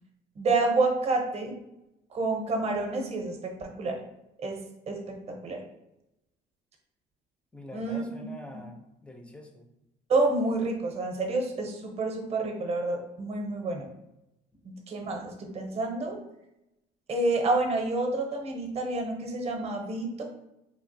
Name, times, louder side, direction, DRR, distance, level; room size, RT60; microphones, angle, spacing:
voice 1, 0.4-1.6 2.1-4.0 4.4-5.6 7.7-8.3 10.1-13.9 14.6-16.2 17.1-20.2, right 2 dB, 40° right, 3 dB, 0.6 m, -29 dB
voice 2, 7.5-9.7, left 1 dB, 5° left, 4 dB, 0.4 m, -45 dB
3.2 x 2.3 x 2.6 m, 0.88 s
cardioid pair, 110°, 17 cm